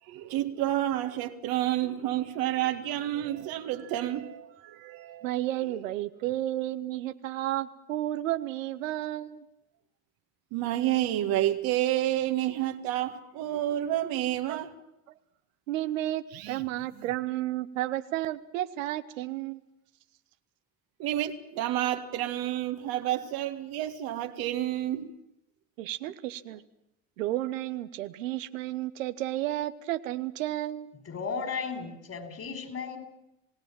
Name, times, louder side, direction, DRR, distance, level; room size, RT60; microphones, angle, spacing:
voice 1, 0.1-5.4 10.5-14.7 16.3-16.6 17.0-17.1 21.0-25.1, right 13 dB, 70° right, 1.9 m, -30 dB
voice 2, 5.2-9.4 14.5-14.6 15.7-19.6 25.8-26.6 27.2-30.9, right 14 dB, 90° right, 1.0 m, -32 dB
voice 3, 31.0-33.0, left 5 dB, 40° left, 4.9 m, -35 dB
27.0 x 17.5 x 7.5 m
hypercardioid pair, 70°, 38 cm